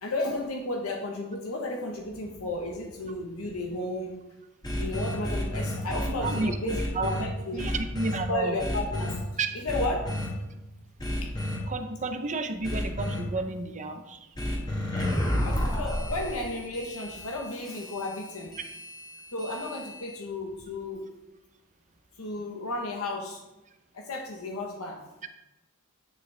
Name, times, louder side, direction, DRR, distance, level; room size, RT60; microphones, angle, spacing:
voice 1, 0.0-4.2 4.8-7.7 8.3-9.2 9.6-10.1 11.2-11.3 15.4-18.6 19.3-21.1 22.2-23.4 23.9-25.0, left 2 dB, 75° left, 2 dB, 1.0 m, -33 dB
sound 1, 4.6-7.2 7.6-8.2 8.6-9.1 9.7-10.3 11.0-11.6 12.6-13.2 14.4-20.2, left 1 dB, 20° left, 1.8 m, -31 dB
voice 2, 6.0-7.1 7.5-8.6 9.4-9.5 11.7-14.3 14.8-15.0, right 3 dB, 35° right, 7 dB, 0.6 m, -32 dB
10.5 x 6.2 x 3.3 m, 0.99 s
head